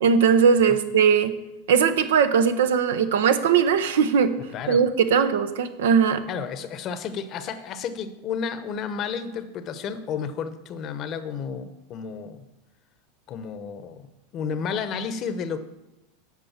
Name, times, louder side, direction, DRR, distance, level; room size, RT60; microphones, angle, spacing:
voice 1, 0.0-1.3 1.7-4.3 4.7-6.2, right 6 dB, 80° right, 10 dB, 0.8 m, -19 dB
voice 2, 4.5-4.8 6.3-12.5 13.3-14.1 14.3-15.6, left 6 dB, 40° left, 11 dB, 0.9 m, -32 dB
8.3 x 5.3 x 7.3 m, 0.97 s
supercardioid pair, 115°, 0 cm